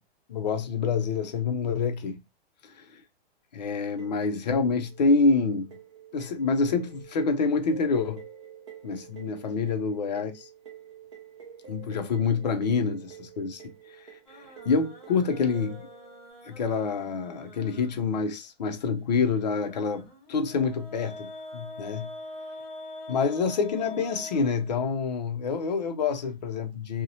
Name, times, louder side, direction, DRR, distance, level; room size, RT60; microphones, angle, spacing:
voice 1, 0.3-2.2 2.6-2.9 3.5-5.8 6.1-8.2 8.8-10.5 11.7-13.6 14.0-14.1 14.7-15.8 16.5-22.1 23.1-27.0, left 4 dB, 45° left, 0.4 m, -27 dB
sound 1, 4.0-16.3, right 7 dB, 30° right, 0.4 m, -48 dB
sound 2, 14.2-18.3 19.4-25.2, left 1 dB, 5° left, 0.8 m, -44 dB
2.7 x 2.0 x 2.6 m
hypercardioid pair, 170°, 32 cm